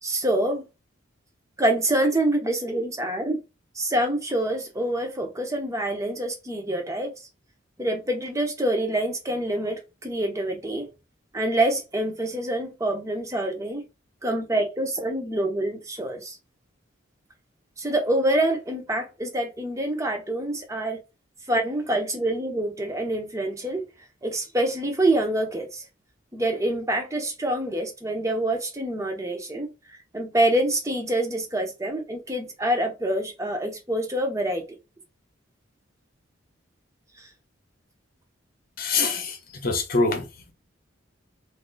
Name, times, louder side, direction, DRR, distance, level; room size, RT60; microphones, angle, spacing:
voice 1, 0.0-0.6 1.6-3.4 3.7-7.1 7.8-10.9 11.3-13.8 14.2-16.4 17.8-21.0 21.5-23.9 24.2-25.8 26.3-34.6 37.2-37.3, right 1 dB, 15° right, 0.6 m, -26 dB
voice 2, 38.8-39.4 39.6-40.5, left 3 dB, 45° left, 0.8 m, -24 dB
2.6 x 2.4 x 3.8 m
head